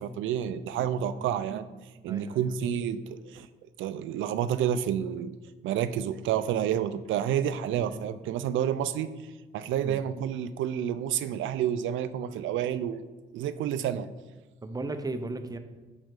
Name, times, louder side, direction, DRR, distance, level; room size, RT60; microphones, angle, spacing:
voice 1, 0.0-1.7 2.0-3.5 3.8-5.3 5.6-9.1 9.5-13.0 13.3-14.1, right 10 dB, 75° right, 13 dB, 0.4 m, -29 dB
voice 2, 2.1-2.5 7.9-8.1 9.8-10.0 14.6-15.6, right 2 dB, 20° right, 8 dB, 0.5 m, -36 dB
6.0 x 5.1 x 3.8 m, 1.2 s
cardioid pair, 90°, 20 cm